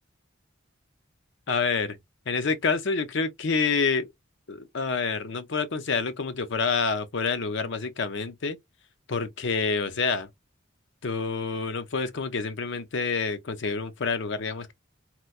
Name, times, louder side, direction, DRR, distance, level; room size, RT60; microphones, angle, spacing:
voice 1, 1.5-2.0 2.3-4.1 4.5-8.6 9.1-10.3 11.0-14.7, left 4 dB, 55° left, 0.6 m, -27 dB
4.3 x 2.2 x 2.3 m
head